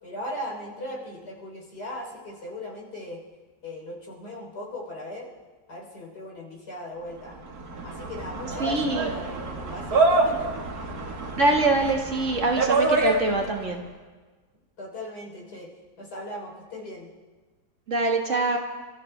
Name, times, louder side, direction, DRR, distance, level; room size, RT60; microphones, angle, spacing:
voice 1, 0.0-3.2 3.6-5.3 5.7-7.4 7.8-10.5 14.8-15.7 16.0-17.1, left 1 dB, 75° left, -2 dB, 3.9 m, -38 dB
sound 1, 7.3-13.7, right 3 dB, 65° right, 2.0 m, -26 dB
voice 2, 8.6-9.1 11.4-13.8 17.9-18.6, right 2 dB, 45° right, 1 dB, 1.8 m, -24 dB
28.0 x 14.0 x 3.3 m, 1.3 s
omnidirectional pair, 1.8 m